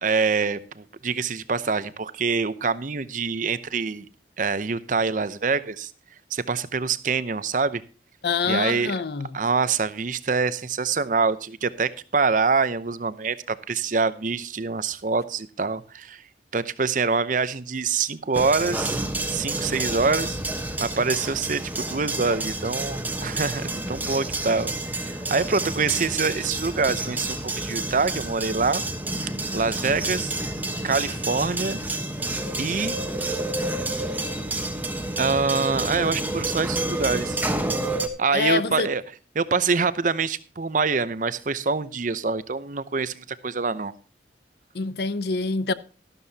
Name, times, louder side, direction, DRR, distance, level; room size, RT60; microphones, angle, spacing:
voice 1, 0.0-4.1 4.4-5.9 6.3-7.8 8.5-8.9 9.3-16.2 16.5-19.0 19.3-20.4 20.8-28.8 29.5-30.6 30.8-31.8 32.6-33.0 35.2-37.5 38.2-39.0 39.4-43.9, right 4 dB, 45° right, 0.7 m, -25 dB
voice 2, 8.2-9.3 38.3-38.9 44.7-45.7, left 4 dB, 60° left, 0.6 m, -25 dB
sound 1, 18.3-38.1, right 2 dB, 10° right, 1.1 m, -29 dB
13.5 x 12.5 x 2.8 m
head